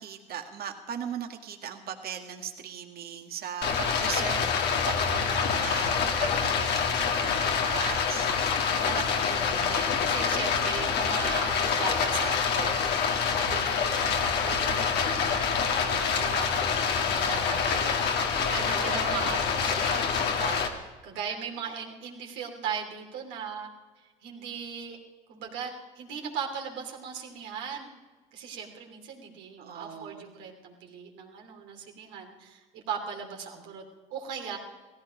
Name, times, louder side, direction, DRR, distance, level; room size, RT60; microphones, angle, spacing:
voice 1, 0.0-8.3 18.2-19.3 29.6-30.2, right 8 dB, 55° right, 4 dB, 2.0 m, -38 dB
Stream, 3.6-20.7, left 6 dB, 65° left, 1.9 m, -26 dB
voice 2, 8.8-23.7 24.0-25.0 25.3-27.9 28.3-33.8 34.1-34.6, right 6 dB, 75° right, 1 dB, 3.0 m, -38 dB
17.0 x 15.0 x 5.1 m, 1.3 s
supercardioid pair, 70°, 18 cm